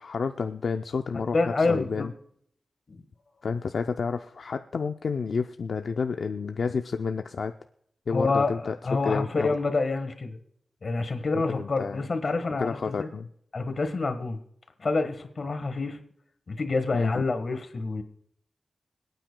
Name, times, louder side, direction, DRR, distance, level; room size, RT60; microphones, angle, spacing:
voice 1, 0.0-2.1 3.4-7.5 8.1-8.8 9.0-9.6 11.5-12.1 12.6-13.3 16.9-17.2, left 5 dB, 75° left, 6 dB, 0.4 m, -30 dB
voice 2, 1.1-2.1 2.9-3.0 8.1-8.5 8.8-10.4 10.8-13.1 13.5-14.4 14.8-16.0 16.5-18.0, left 3 dB, 55° left, 9 dB, 1.4 m, -27 dB
26.0 x 9.0 x 2.2 m, 0.70 s
wide cardioid pair, 110°, 0 cm